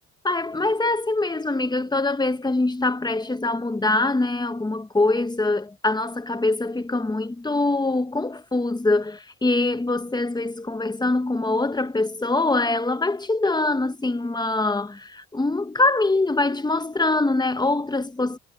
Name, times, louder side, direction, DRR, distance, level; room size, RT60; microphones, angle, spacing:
voice 1, 0.2-18.4, left 2 dB, 15° left, 1.3 m, -23 dB
cardioid pair, 90°, 30 cm